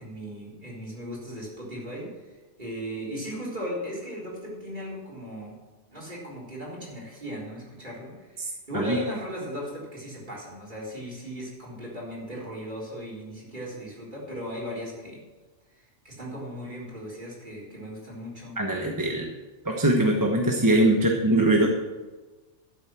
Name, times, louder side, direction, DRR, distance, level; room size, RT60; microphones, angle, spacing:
voice 1, 0.0-2.1 2.6-5.6 5.9-15.2 15.8-18.6, equal, 40° right, -4 dB, 4.0 m, -37 dB
voice 2, 18.6-19.3 19.6-21.7, right 1 dB, 15° right, 0 dB, 1.1 m, -22 dB
12.5 x 8.1 x 6.1 m, 1.2 s
omnidirectional pair, 1.2 m